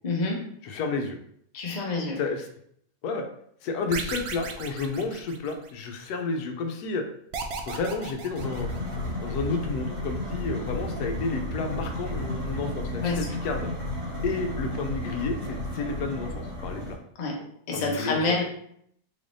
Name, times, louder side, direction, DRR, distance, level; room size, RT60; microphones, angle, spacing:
voice 1, 0.0-0.4 1.5-2.2 13.0-13.3 16.8-16.9 17.2-17.4 17.7-18.4, left 3 dB, 40° left, 0 dB, 0.6 m, -27 dB
voice 2, 0.6-1.2 2.2-2.5 3.0-3.3 3.6-7.0 7.7-8.7 9.2-13.7 14.2-17.0 17.7-18.4, left 4 dB, 85° left, 5 dB, 1.1 m, -31 dB
sound 1, 3.9-5.9 7.3-9.1, right 5 dB, 85° right, 0.5 m, -36 dB
sound 2, 8.3-16.9, left 1 dB, 60° right, 2.1 m, -32 dB
4.0 x 3.3 x 2.6 m, 0.68 s
omnidirectional pair, 1.7 m